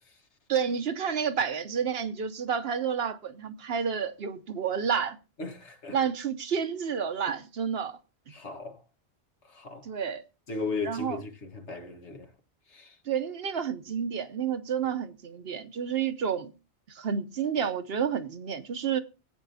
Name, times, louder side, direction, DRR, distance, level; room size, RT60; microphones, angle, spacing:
voice 1, 0.5-5.2 5.9-8.0 9.8-10.2 10.8-11.2 13.1-16.5 16.9-19.0, right 7 dB, 60° right, 1.0 m, -30 dB
voice 2, 5.4-6.0 8.3-8.8 9.5-9.8 10.5-12.3 12.7-12.9, left 4 dB, 75° left, 1.7 m, -36 dB
16.5 x 8.7 x 2.7 m
omnidirectional pair, 1.2 m